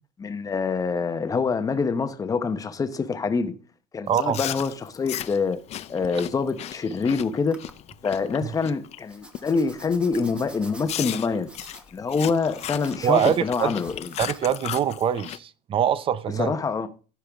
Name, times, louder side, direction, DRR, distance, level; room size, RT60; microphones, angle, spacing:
voice 1, 0.2-3.5 3.9-5.6 5.9-7.6 8.0-11.5 11.9-14.1 16.4-16.9, left 4 dB, 20° left, 1.0 m, -25 dB
Chewing mastication, 4.1-9.0 9.3-9.7 10.1-10.3 10.9-15.4, left 12 dB, 40° left, 0.5 m, -36 dB
voice 2, 4.1-4.4 8.4-8.5 13.0-13.7 14.2-16.5, right 9 dB, 30° right, 0.6 m, -24 dB
sound 1, 6.7-7.0 7.5-8.0 9.1-14.4, right 1 dB, 5° right, 1.2 m, -48 dB
15.0 x 5.5 x 3.5 m
cardioid pair, 140°, 17 cm